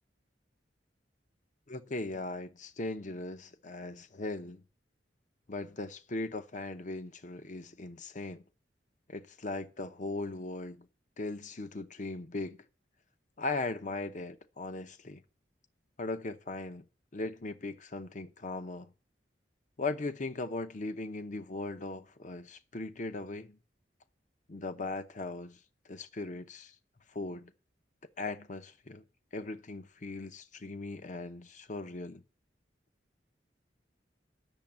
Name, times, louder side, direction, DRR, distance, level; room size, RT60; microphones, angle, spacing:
voice 1, 1.7-4.6 5.5-8.4 9.1-10.9 11.2-12.6 13.4-15.2 16.0-16.8 17.1-18.9 19.8-23.6 24.5-25.6 25.9-26.7 27.1-27.5 28.2-29.0 29.3-32.2, left 2 dB, 45° left, 0.8 m, -38 dB
8.9 x 7.0 x 8.8 m
head